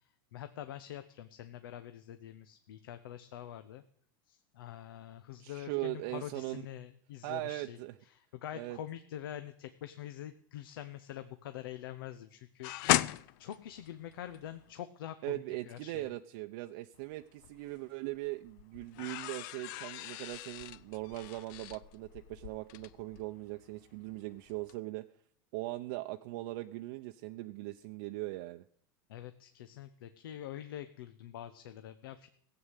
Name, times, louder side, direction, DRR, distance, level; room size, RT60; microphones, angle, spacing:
voice 1, 0.0-3.8 4.3-7.8 8.1-12.7 13.4-16.1 29.1-32.3, left 11 dB, 80° left, 10 dB, 0.9 m, -45 dB
voice 2, 5.4-6.6 7.2-7.9 8.5-8.8 15.2-25.0 25.5-28.6, right 19 dB, 60° right, 6 dB, 0.7 m, -40 dB
sound 1, 12.6-14.7 16.9-17.8 18.1-24.2 24.5-24.7, left 16 dB, 60° left, 0.5 m, -36 dB
16.0 x 8.0 x 8.1 m, 0.64 s
supercardioid pair, 115°, 12 cm